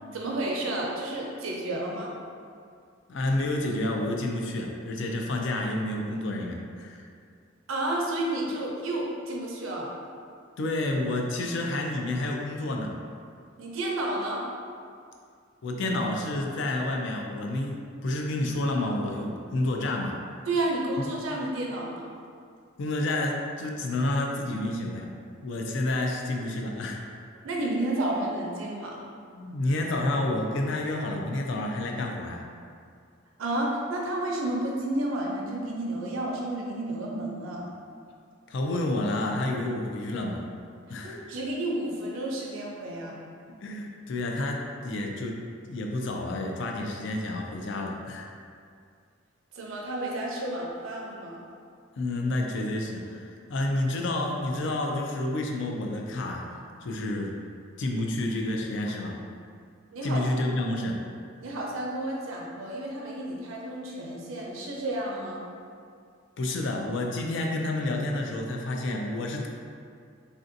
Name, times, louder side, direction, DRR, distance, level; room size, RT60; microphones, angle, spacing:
voice 1, 0.1-2.1 7.7-9.9 13.6-14.4 20.5-22.1 27.4-29.0 33.4-37.6 41.0-43.2 49.5-51.4 59.9-60.2 61.4-65.4, right 1 dB, 90° right, -2 dB, 0.6 m, -31 dB
voice 2, 3.1-7.0 10.6-13.0 15.6-20.2 21.0-21.1 22.8-25.1 25.4-27.0 29.3-32.4 38.5-40.4 40.9-41.2 43.6-45.4 45.7-48.3 52.0-56.5 56.8-57.3 57.8-59.2 60.0-61.0 66.4-69.5, left 1 dB, 65° left, 1 dB, 0.4 m, -29 dB
3.2 x 2.6 x 2.5 m, 2.3 s
head